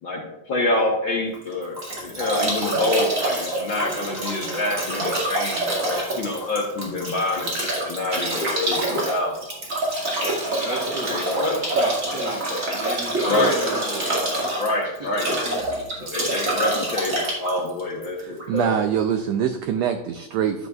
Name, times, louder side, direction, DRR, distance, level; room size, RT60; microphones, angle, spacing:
voice 1, 0.0-9.3 11.1-11.6 13.2-13.5 14.6-15.3 16.0-18.7, left 2 dB, 60° left, -2 dB, 1.3 m, -26 dB
Bathtub (filling or washing) / Drip / Trickle dribble, 1.3-18.6, right 1 dB, 30° right, 2.1 m, -26 dB
voice 2, 10.3-14.1 14.4-15.2 15.5-15.8 16.2-16.3 17.5-17.6, right 1 dB, 70° right, -1 dB, 1.0 m, -33 dB
voice 3, 18.2-20.7, right 8 dB, 85° right, 7 dB, 1.4 m, -24 dB
11.0 x 8.3 x 2.4 m, 0.86 s
omnidirectional pair, 3.6 m